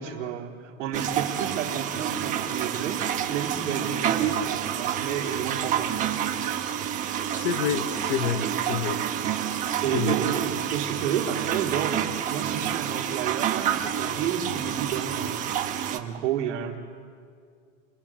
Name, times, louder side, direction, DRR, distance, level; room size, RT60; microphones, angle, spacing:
voice 1, 0.0-6.2 9.5-15.6 15.9-16.8, right 9 dB, 65° right, 1 dB, 3.7 m, -31 dB
sound 1, 0.9-16.0, right 9 dB, 20° right, 1.1 m, -28 dB
voice 2, 7.3-9.0 9.9-10.2, left 8 dB, 45° left, 9 dB, 1.2 m, -28 dB
28.0 x 21.5 x 7.5 m, 2.2 s
supercardioid pair, 160°, 39 cm